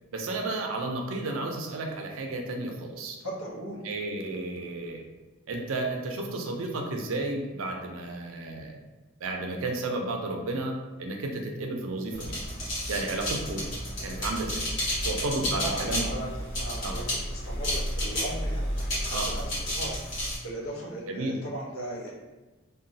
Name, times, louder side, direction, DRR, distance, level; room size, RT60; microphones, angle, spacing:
voice 1, 0.1-3.2 3.8-5.1 5.5-8.8 9.2-12.3 12.9-13.6 14.0-14.7 15.0-16.1 16.8-17.0 19.1-19.3 21.1-21.3, right 2 dB, 80° right, 2 dB, 0.5 m, -32 dB
voice 2, 3.2-3.8 15.6-16.3 16.6-22.1, right 1 dB, 90° left, -2 dB, 0.8 m, -38 dB
sound 1, 12.1-20.4, equal, 60° left, 1.3 m, -31 dB
2.9 x 2.2 x 2.6 m, 1.2 s
head